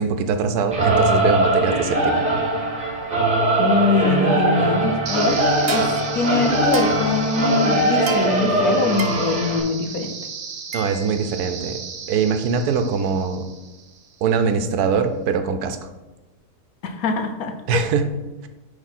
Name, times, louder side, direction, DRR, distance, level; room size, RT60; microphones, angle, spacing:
voice 1, 0.0-2.2 10.7-11.8 12.1-13.5 14.2-15.8 17.7-18.1, right 5 dB, 75° right, 8 dB, 1.2 m, -22 dB
Singing / Musical instrument, 0.7-9.6, right 2 dB, 30° right, 1.3 m, -21 dB
voice 2, 3.6-5.9 6.1-10.1 16.8-17.8, left 3 dB, 70° left, 6 dB, 1.1 m, -23 dB
Wind instrument woodwind instrument, 4.0-8.0, left 2 dB, 50° left, 0.7 m, -30 dB
sound 1, 5.1-14.1, right 6 dB, 55° right, 0.9 m, -33 dB
9.6 x 3.5 x 4.2 m, 1.1 s
omnidirectional pair, 1.7 m